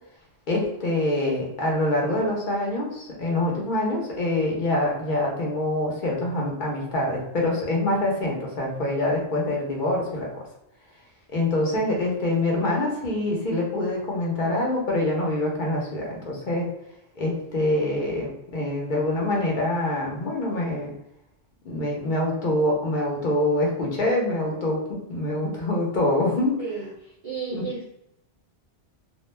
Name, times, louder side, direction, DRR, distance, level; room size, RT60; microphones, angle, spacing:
voice 1, 0.5-10.4 11.3-16.7 17.2-20.9 21.6-26.6 27.5-27.6, left 1 dB, 45° left, -2 dB, 0.9 m, -25 dB
voice 2, 11.9-12.8 26.6-26.9 27.2-27.9, right 5 dB, 45° right, -7 dB, 0.5 m, -35 dB
2.4 x 2.2 x 3.2 m, 0.82 s
omnidirectional pair, 1.2 m